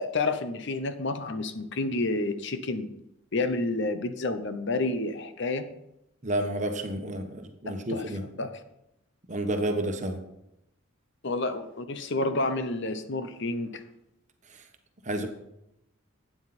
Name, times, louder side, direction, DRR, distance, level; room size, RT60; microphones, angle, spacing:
voice 1, 0.0-2.9 3.3-5.7 7.7-8.0 8.4-8.5 11.2-13.8, left 2 dB, 55° left, 10 dB, 0.8 m, -29 dB
voice 2, 6.2-8.3 9.3-10.2 14.5-14.7 15.0-15.3, right 1 dB, 35° right, 6 dB, 1.2 m, -30 dB
12.0 x 9.1 x 4.3 m, 0.84 s
head